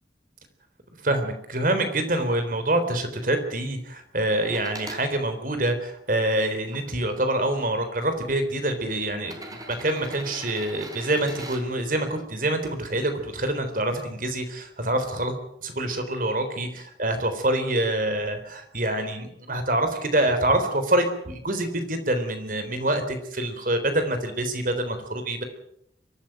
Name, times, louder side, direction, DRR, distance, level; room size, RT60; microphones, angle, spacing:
voice 1, 1.0-25.4, right 1 dB, 50° right, 8 dB, 3.7 m, -26 dB
sound 1, 4.4-5.0 5.8-6.8 7.8-7.9 9.2-11.6 13.5-13.6, right 2 dB, 20° right, 4.0 m, -41 dB
23.5 x 14.0 x 9.2 m, 0.75 s
head